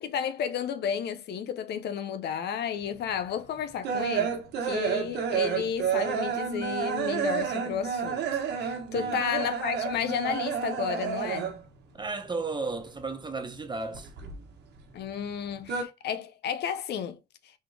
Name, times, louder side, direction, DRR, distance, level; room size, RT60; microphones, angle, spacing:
voice 1, 0.0-11.5 14.9-17.2, left 8 dB, 75° left, 0.7 m, -32 dB
sound 1, 3.0-11.8 12.0-13.2 13.5-14.9 15.2-15.8, right 7 dB, 85° right, 1.2 m, -30 dB
voice 2, 11.9-14.1, right 3 dB, 25° right, 1.1 m, -34 dB
4.2 x 3.7 x 3.3 m
cardioid pair, 65°, 17 cm